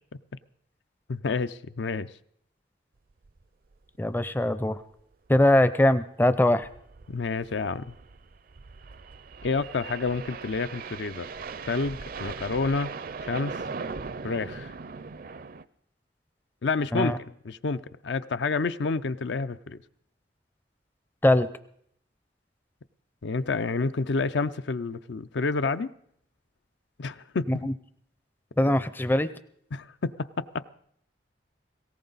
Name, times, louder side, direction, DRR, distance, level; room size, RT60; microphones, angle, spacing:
voice 1, 1.1-2.1 7.1-7.9 9.4-11.3 11.7-12.9 13.2-13.6 14.2-14.7 16.6-19.8 23.2-25.9 27.0-27.7 29.7-30.6, left 4 dB, 75° left, 13 dB, 0.5 m, -29 dB
sound 1, 3.2-3.4 3.7-3.8 4.1-4.2 4.7-5.0 6.3-15.6, right 4 dB, 50° right, 0.5 m, -40 dB
voice 2, 4.0-4.8 5.3-6.7 16.9-17.2 21.2-21.5 27.5-27.7 28.6-29.3, left 1 dB, 10° left, 12 dB, 0.5 m, -22 dB
18.5 x 17.5 x 4.0 m, 0.69 s
head